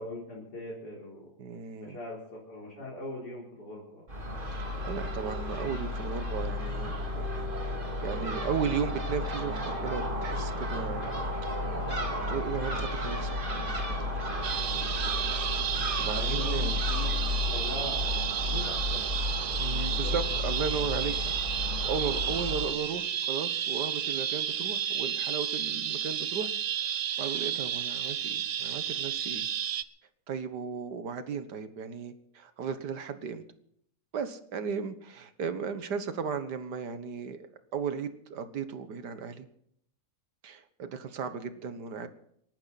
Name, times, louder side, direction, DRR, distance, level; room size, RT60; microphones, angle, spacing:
voice 1, 0.0-1.3 1.8-4.0 16.1-17.1 17.5-19.0 19.8-20.2, left 1 dB, 75° left, -4 dB, 4.6 m, -41 dB
voice 2, 1.4-2.0 4.5-7.8 8.0-11.3 12.3-15.1 16.0-16.8 19.6-26.5 26.8-29.5 30.3-33.4 34.1-37.5 37.7-39.5 40.4-42.1, right 6 dB, 85° right, 10 dB, 1.9 m, -36 dB
Crow / Gull seagull, 4.1-22.7, left 2 dB, 30° right, 2.6 m, -33 dB
sound 1, 14.4-29.8, right 10 dB, 55° right, 0.8 m, -32 dB
28.5 x 11.5 x 4.1 m, 0.72 s
omnidirectional pair, 1.7 m